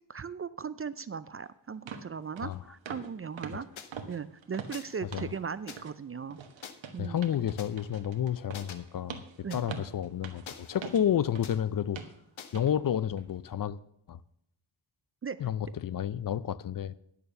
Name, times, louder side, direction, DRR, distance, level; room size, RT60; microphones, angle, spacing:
voice 1, 0.1-3.7 4.1-6.4 6.9-7.2 9.4-9.6 15.2-15.4, right 6 dB, 30° right, 0.4 m, -38 dB
sound 1, 1.2-1.3 1.9-2.1 2.4-2.6 2.9-3.1 3.4-5.4 5.7-6.0 6.3-11.6 12.0-12.2 12.5-12.7 13.2-13.3, right 6 dB, 70° right, 1.4 m, -44 dB
sound 2, 3.8-3.9 4.7-5.0 5.7-5.8 6.6-6.7 7.6-7.7 8.5-8.8 9.5-9.6 10.5-11.0 11.4-11.6 12.4-12.6, left 8 dB, 75° left, 1.1 m, -45 dB
voice 2, 7.0-9.2 9.5-12.0 12.5-13.8 14.1-14.2 15.4-16.9, left 9 dB, 45° left, 0.5 m, -30 dB
10.5 x 6.9 x 6.6 m
cardioid pair, 90°, 47 cm